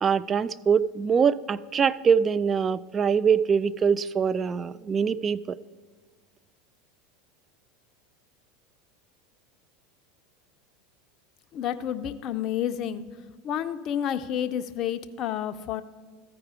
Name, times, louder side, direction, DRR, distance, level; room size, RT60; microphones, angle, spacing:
voice 1, 0.0-5.6, right 6 dB, 30° right, 18 dB, 0.3 m, -23 dB
voice 2, 11.5-15.8, left 10 dB, 45° left, 9 dB, 0.5 m, -30 dB
14.0 x 4.9 x 4.9 m, 1.5 s
hypercardioid pair, 95°, 0 cm